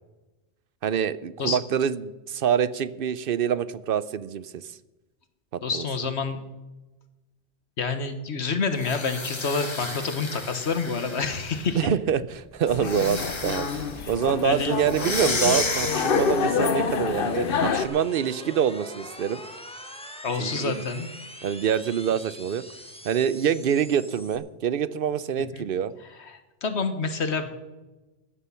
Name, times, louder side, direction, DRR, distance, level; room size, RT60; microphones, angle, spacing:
voice 1, 0.8-4.5 5.5-5.8 11.7-13.7 14.1-19.4 20.4-20.9 21.4-22.6 23.0-25.9, right 8 dB, 60° right, 16 dB, 0.8 m, -26 dB
voice 2, 5.6-6.4 7.8-11.8 14.0-14.1 14.4-14.7 20.2-21.1 25.5-25.6 26.2-27.5, left 4 dB, 80° left, 9 dB, 1.6 m, -28 dB
sound 1, 8.7-11.7 12.8-14.0 14.9-16.6, left 3 dB, 25° left, 1.2 m, -32 dB
sound 2, 12.0-24.4, left 1 dB, 5° left, 1.3 m, -45 dB
sound 3, 12.7-17.9, left 5 dB, 55° left, 1.0 m, -27 dB
15.5 x 10.0 x 5.7 m, 1.1 s
omnidirectional pair, 1.1 m